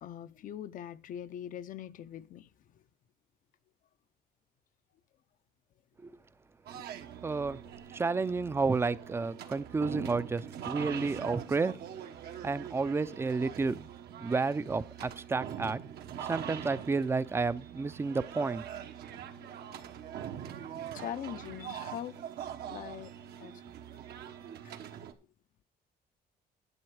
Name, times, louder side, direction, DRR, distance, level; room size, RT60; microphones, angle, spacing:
voice 1, 0.0-2.5 6.7-6.8 19.1-19.6 20.9-22.2 22.6-23.1 23.4-23.6 24.6-24.7, left 10 dB, 55° left, 0.6 m, -42 dB
sound 1, 6.7-25.1, right 9 dB, 75° right, 1.3 m, -43 dB
voice 2, 7.2-7.6 7.9-11.8 12.4-13.9 14.2-15.8 16.3-18.6, right 4 dB, 15° right, 0.4 m, -31 dB
11.0 x 7.9 x 4.8 m
cardioid pair, 150°, 16 cm